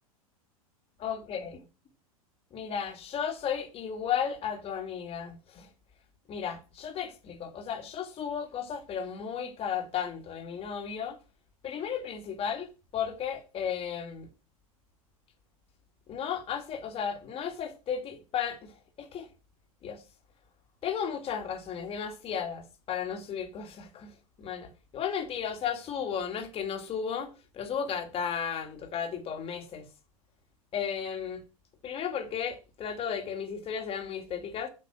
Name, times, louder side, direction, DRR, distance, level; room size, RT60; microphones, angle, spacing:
voice 1, 1.0-1.6 2.5-5.7 6.3-11.2 11.6-12.7 12.9-14.3 16.1-18.7 19.0-19.3 19.8-20.0 20.8-24.1 24.4-29.9 30.7-31.4 31.8-34.7, left 7 dB, 30° left, 2.3 m, -34 dB
8.5 x 6.1 x 6.2 m
hypercardioid pair, 100°, 19 cm